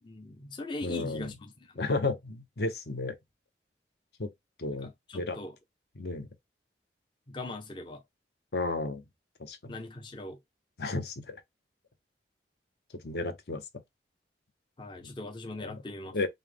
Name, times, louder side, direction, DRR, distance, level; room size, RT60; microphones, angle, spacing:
voice 1, 0.0-1.8 4.7-5.5 7.3-8.0 9.7-10.4 14.8-16.2, left 2 dB, 25° left, 0.5 m, -41 dB
voice 2, 0.8-1.3 1.8-3.2 4.2-4.3 4.6-5.4 6.0-6.3 8.5-9.0 9.4-9.8 10.8-11.4 13.0-13.6 15.6-15.8 16.1-16.3, left 3 dB, 65° left, 0.7 m, -33 dB
5.4 x 2.0 x 3.3 m
head